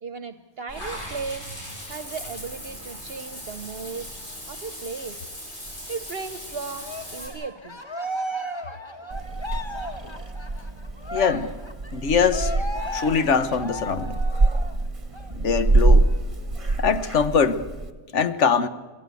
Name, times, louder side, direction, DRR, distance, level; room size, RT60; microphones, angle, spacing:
voice 1, 0.0-1.5 1.9-4.1 4.5-5.3 5.9-7.8, right 5 dB, 60° right, 10 dB, 1.1 m, -36 dB
Water / Bathtub (filling or washing), 0.7-7.3, equal, 45° left, 8.2 m, -38 dB
Cheering, 6.8-14.8 15.1-15.3 15.7-16.7, equal, 25° left, 1.5 m, -35 dB
Purr / Meow, 9.1-17.9, right 2 dB, 30° right, 1.2 m, -25 dB
voice 2, 11.1-11.5 11.9-12.5 12.9-14.2 15.3-16.1 16.8-17.7 18.1-18.7, left 6 dB, 85° left, 11 dB, 1.4 m, -22 dB
27.0 x 17.0 x 8.3 m, 1.3 s
omnidirectional pair, 1.2 m